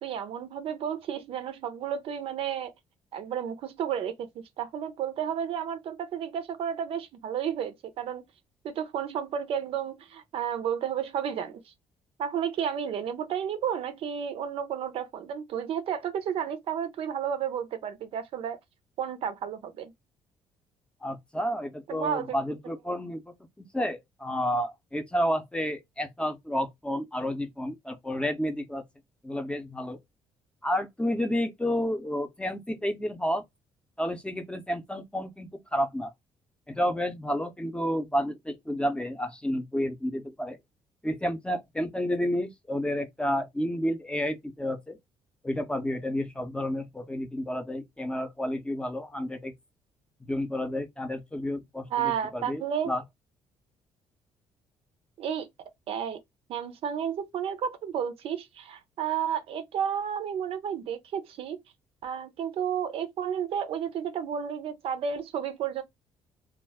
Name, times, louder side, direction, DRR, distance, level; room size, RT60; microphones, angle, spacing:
voice 1, 0.0-2.7 3.1-8.2 8.6-11.7 12.2-18.6 19.0-19.9 21.9-22.4 51.9-52.9 55.2-55.5 55.9-56.2 56.5-61.6 62.0-65.8, right 8 dB, 65° right, 0.5 m, -32 dB
voice 2, 21.0-23.2 23.6-28.8 29.2-30.0 30.6-33.4 34.0-36.1 36.7-40.6 41.0-45.0 45.4-49.5 50.2-53.0, equal, 10° left, 0.6 m, -30 dB
2.3 x 2.1 x 3.4 m
supercardioid pair, 60°, 11 cm